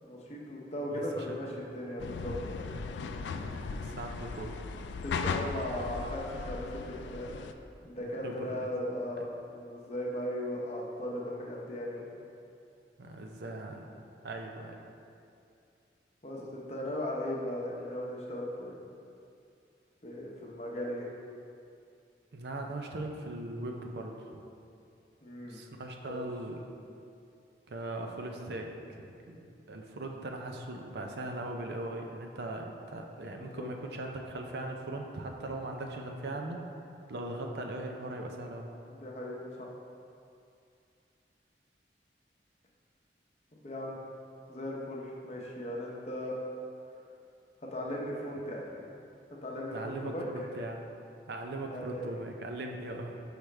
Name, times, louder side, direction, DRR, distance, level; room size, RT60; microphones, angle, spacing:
voice 1, 0.0-2.6 4.9-7.4 7.8-12.1 16.2-18.8 20.0-21.0 25.2-25.6 26.0-26.3 33.4-33.7 38.9-39.7 43.5-44.0 44.5-46.3 47.7-48.8 49.4-50.5 51.7-52.1, left 1 dB, 40° left, -3 dB, 0.8 m, -37 dB
voice 2, 0.9-1.5 3.4-4.6 8.0-8.7 9.2-9.3 13.0-14.8 22.3-24.2 25.4-26.6 27.7-36.6 37.1-38.7 49.7-50.8 51.3-53.2, right 2 dB, 70° right, 2 dB, 0.5 m, -40 dB
sound 1, 2.0-7.5, left 4 dB, 85° left, 0.3 m, -37 dB
6.2 x 4.9 x 3.3 m, 2.5 s
head